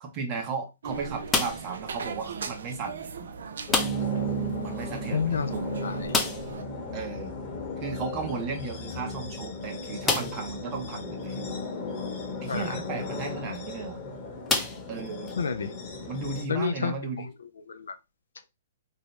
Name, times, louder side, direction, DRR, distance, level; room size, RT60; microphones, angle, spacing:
voice 1, 0.0-3.3 4.6-5.7 6.9-7.3 7.8-11.6 12.4-14.0 14.9-15.3 16.1-17.3, right 4 dB, 35° right, 0.8 m, -35 dB
sound 1, 0.8-6.6, right 5 dB, 75° right, 0.4 m, -40 dB
sound 2, 1.3-1.8 3.7-4.2 4.5-4.6 4.9-5.0 6.1-6.6 8.4-8.5 9.1-9.2 10.0-10.5 11.2-11.3 13.4-13.6 14.5-15.3, left 4 dB, 15° left, 0.6 m, -28 dB
sound 3, 3.7-16.4, equal, 35° left, 0.9 m, -35 dB
voice 2, 5.1-5.5 5.8-6.2 12.5-12.8 15.4-15.7 16.5-18.0, left 6 dB, 80° left, 0.3 m, -30 dB
2.7 x 2.0 x 3.1 m
hypercardioid pair, 130°, 0 cm